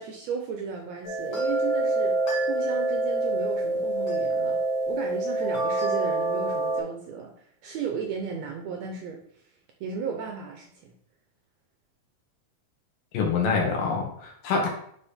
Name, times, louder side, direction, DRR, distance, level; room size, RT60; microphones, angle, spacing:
voice 1, 0.0-2.2 2.5-4.6 4.9-7.3 7.6-9.2 9.8-10.9 14.6-14.7, right 6 dB, 80° right, 2 dB, 1.6 m, -34 dB
sound 1, 1.0-6.8, right 2 dB, 45° left, 1.5 m, -26 dB
voice 2, 13.1-14.7, left 5 dB, 80° left, 0 dB, 3.2 m, -25 dB
9.3 x 3.5 x 4.3 m, 0.65 s
omnidirectional pair, 3.9 m